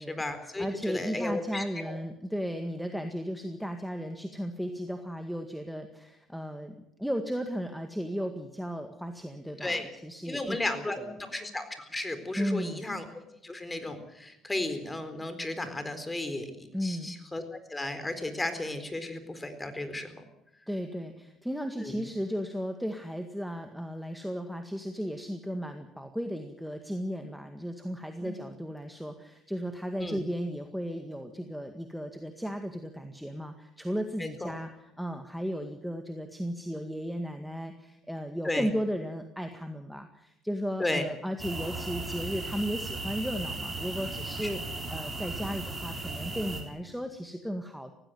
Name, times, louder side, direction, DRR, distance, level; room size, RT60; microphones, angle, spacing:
voice 1, 0.0-2.0 9.6-9.9 10.3-13.1 13.4-20.1 21.8-22.0 28.2-28.3 30.0-30.2 34.2-34.5 38.4-38.7 40.8-41.0 44.4-44.5, left 2 dB, 15° left, 10 dB, 4.1 m, -34 dB
voice 2, 0.6-11.1 12.4-12.9 16.7-17.2 20.7-47.9, equal, ahead, 6 dB, 1.9 m, -35 dB
sound 1, 41.4-46.6, right 2 dB, 20° right, 6.7 m, -36 dB
18.5 x 16.0 x 9.3 m, 0.87 s
supercardioid pair, 80°, 0 cm